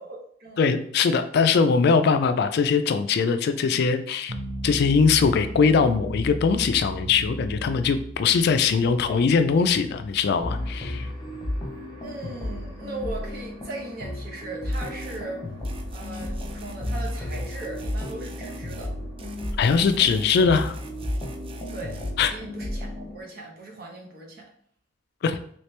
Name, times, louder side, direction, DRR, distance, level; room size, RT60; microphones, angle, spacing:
voice 1, 0.0-0.7 12.0-15.4 15.9-18.9 21.7-22.0 22.3-24.5, right 2 dB, 55° right, 0 dB, 0.9 m, -38 dB
voice 2, 0.6-4.3 4.6-11.1 19.6-20.8 22.2-22.3 25.2-25.4, left 5 dB, 60° left, 9 dB, 0.3 m, -21 dB
sound 1, 4.3-15.4, right 1 dB, 75° right, 0.7 m, -38 dB
sound 2, 10.4-23.2, left 1 dB, 25° left, 0.8 m, -33 dB
sound 3, 14.7-15.2 15.6-18.9 19.2-22.1, equal, 30° right, 0.4 m, -40 dB
3.1 x 2.9 x 3.2 m, 0.63 s
head